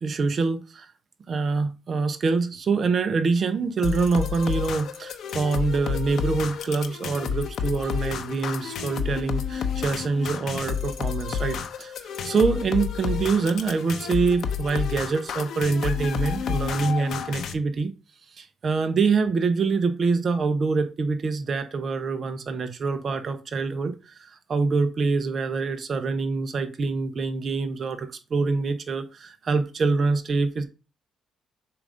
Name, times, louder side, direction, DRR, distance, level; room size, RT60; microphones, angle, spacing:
voice 1, 0.0-0.9 1.3-17.9 18.4-30.7, right 4 dB, 50° right, 0.8 m, -25 dB
sound 1, 3.8-17.5, left 7 dB, 70° left, 0.8 m, -30 dB
7.1 x 2.6 x 5.0 m
cardioid pair, 90°, 0 cm